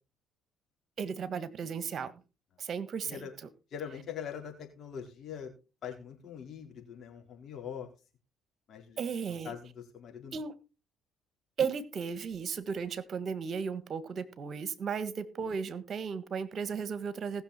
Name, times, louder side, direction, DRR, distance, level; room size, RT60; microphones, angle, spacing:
voice 1, 1.0-2.1 2.6-3.5 9.0-9.5 10.3-10.5 11.6-17.4, right 6 dB, 50° right, 14 dB, 1.5 m, -35 dB
voice 2, 3.7-5.5 5.8-7.9 8.7-9.0 9.4-10.4, left 8 dB, 55° left, 2 dB, 4.4 m, -42 dB
18.5 x 6.7 x 4.3 m, 0.32 s
hypercardioid pair, 60°, 0 cm